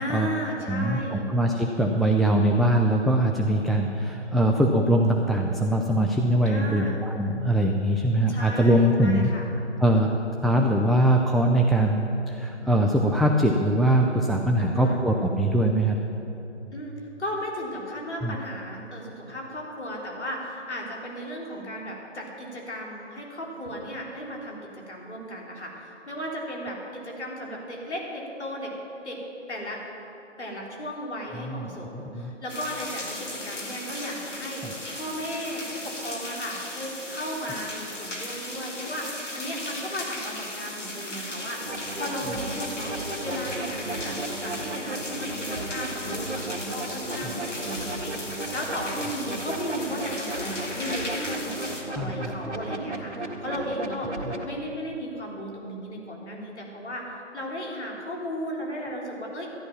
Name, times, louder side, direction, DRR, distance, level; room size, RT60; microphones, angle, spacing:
voice 1, 0.0-1.3 6.5-7.0 8.3-9.5 14.6-15.0 16.7-16.9 17.2-28.7 29.0-29.2 29.5-29.8 30.4-42.9 43.2-54.1 54.4-59.5, equal, 65° left, -2 dB, 3.5 m, -35 dB
voice 2, 0.7-9.3 9.8-10.1 10.4-16.0 18.2-18.4 31.4-32.3 34.6-34.7 47.2-47.3 51.9-52.5 54.2-54.3, right 1 dB, ahead, 1 dB, 0.3 m, -22 dB
sound 1, 32.5-51.8, left 1 dB, 80° left, 2.7 m, -36 dB
sound 2, 41.7-54.5, right 2 dB, 70° right, 1.8 m, -35 dB
13.5 x 10.5 x 5.9 m, 2.9 s
figure-of-eight pair, 160°, 36 cm